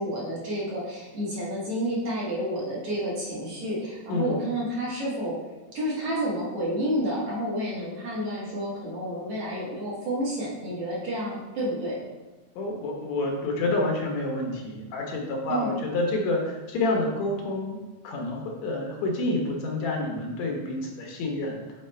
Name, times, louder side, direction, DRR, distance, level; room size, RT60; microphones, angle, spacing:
voice 1, 0.0-5.4 5.7-12.0 15.5-15.7, equal, 60° right, -6 dB, 2.3 m, -30 dB
voice 2, 12.6-17.8 18.0-21.6, left 2 dB, 70° left, 0 dB, 2.0 m, -28 dB
6.5 x 4.1 x 4.2 m, 1.1 s
omnidirectional pair, 3.4 m